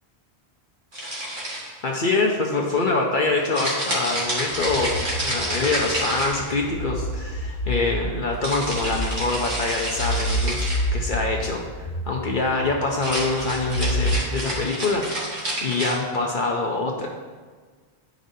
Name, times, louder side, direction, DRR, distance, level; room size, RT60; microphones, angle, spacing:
sound 1, 0.9-1.9 3.5-6.7 8.4-10.9 12.9-15.9, right 1 dB, 55° right, 1.8 m, -29 dB
voice 1, 1.8-17.1, left 3 dB, 55° left, 0 dB, 0.9 m, -25 dB
sound 2, 4.5-14.2, equal, 90° left, 1.0 m, -29 dB
10.5 x 5.0 x 2.7 m, 1.5 s
omnidirectional pair, 1.0 m